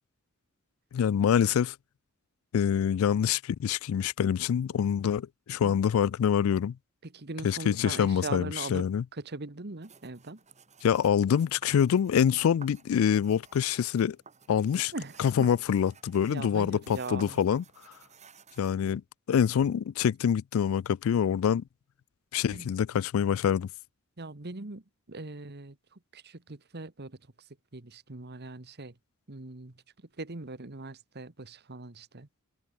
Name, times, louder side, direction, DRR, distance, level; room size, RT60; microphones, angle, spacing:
voice 1, 0.9-1.8 2.5-6.8 7.4-9.0 10.8-14.2 14.5-14.9 15.2-17.6 18.6-19.0 19.3-21.6 22.3-23.7, left 8 dB, 70° left, 0.3 m, -25 dB
voice 2, 7.0-8.8 9.1-10.4 14.9-15.5 16.3-17.4 22.5-22.7 24.2-24.8 25.1-27.2 27.7-28.9 29.3-29.7 30.2-32.3, right 3 dB, 50° right, 1.5 m, -40 dB
sound 1, 9.8-18.8, right 5 dB, 35° right, 7.3 m, -55 dB
head